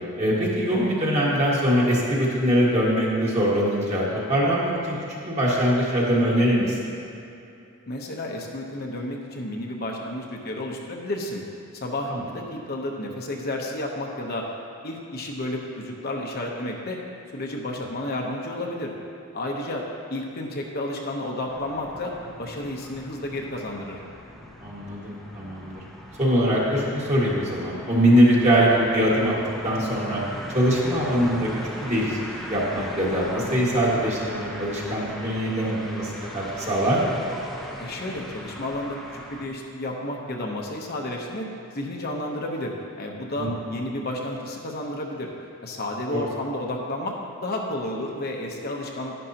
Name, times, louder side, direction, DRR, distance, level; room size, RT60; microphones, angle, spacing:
voice 1, 0.2-6.8 12.1-12.2 24.6-25.8 26.2-29.4 29.6-30.2 30.5-31.5 31.8-32.2 32.5-37.2 43.4-43.5 46.1-46.3, equal, 30° right, -5 dB, 1.8 m, -22 dB
voice 2, 7.9-11.4 11.7-14.5 14.8-17.0 17.3-18.9 19.3-19.8 20.1-24.0 37.8-41.5 41.7-45.3 45.6-47.2 47.4-49.2, left 1 dB, 45° left, -1 dB, 0.9 m, -31 dB
sound 1, 21.5-39.5, equal, ahead, 0.8 m, -39 dB
11.0 x 11.0 x 2.9 m, 2.7 s
head